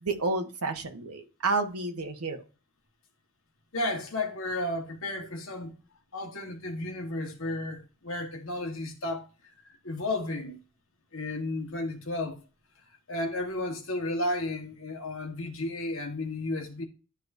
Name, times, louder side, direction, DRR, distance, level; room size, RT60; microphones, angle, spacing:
voice 1, 0.0-2.4, right 3 dB, 85° right, 1.3 m, -30 dB
voice 2, 3.7-5.7 6.1-10.6 11.1-12.4 13.1-16.8, left 2 dB, 65° left, 1.5 m, -33 dB
11.5 x 4.7 x 2.7 m
head